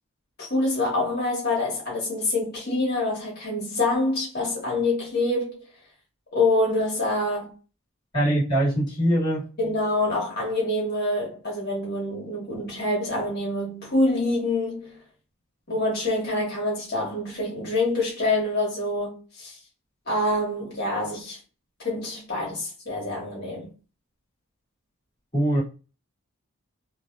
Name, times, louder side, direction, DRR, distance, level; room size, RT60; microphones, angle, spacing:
voice 1, 0.4-5.6 6.3-7.5 9.6-15.0 15.7-19.6 20.0-21.4 21.8-23.7, left 2 dB, 45° left, 1.6 m, -26 dB
voice 2, 8.1-9.5 25.3-25.6, right 1 dB, 20° left, 1.5 m, -22 dB
3.3 x 2.5 x 2.6 m
head